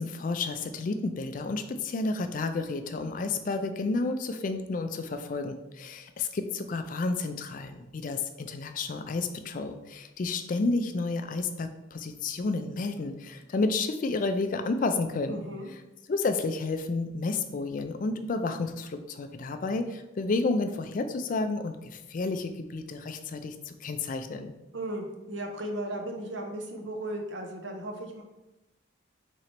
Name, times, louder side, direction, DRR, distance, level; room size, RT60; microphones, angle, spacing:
voice 1, 0.0-15.4 16.1-24.5, left 3 dB, 40° left, 8 dB, 0.3 m, -31 dB
voice 2, 15.3-15.7 24.7-28.2, right 1 dB, 60° right, 3 dB, 0.7 m, -36 dB
3.8 x 3.1 x 4.4 m, 0.97 s
head